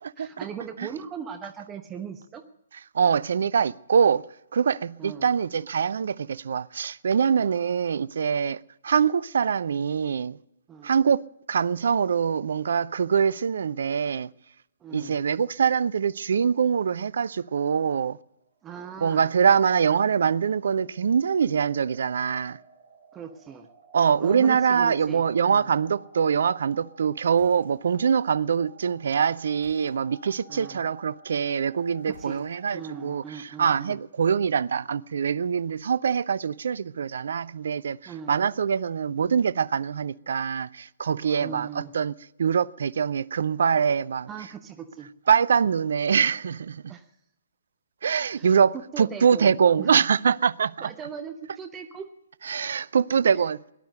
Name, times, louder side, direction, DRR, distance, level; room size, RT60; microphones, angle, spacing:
voice 1, 0.2-2.4 5.0-5.3 10.7-10.9 14.8-15.2 18.6-19.3 23.1-23.7 24.2-25.7 30.5-30.8 32.1-32.5 32.7-34.0 38.1-38.3 41.4-41.9 44.3-45.1 46.9-47.0 48.3-48.5 48.9-49.9 50.8-52.1, right 7 dB, 15° right, 1.0 m, -39 dB
voice 2, 2.9-4.2 4.5-10.4 10.8-11.2 11.5-14.3 14.9-18.2 19.0-22.6 23.9-42.1 42.4-44.3 45.3-46.9 48.0-50.9 52.4-53.6, right 7 dB, 60° right, 0.5 m, -24 dB
sound 1, 20.6-33.2, right 3 dB, 40° right, 3.6 m, -52 dB
sound 2, 27.2-28.1 29.5-30.3 32.0-32.8, equal, 80° left, 6.0 m, -53 dB
18.5 x 11.5 x 6.6 m
figure-of-eight pair, 125°, 0 cm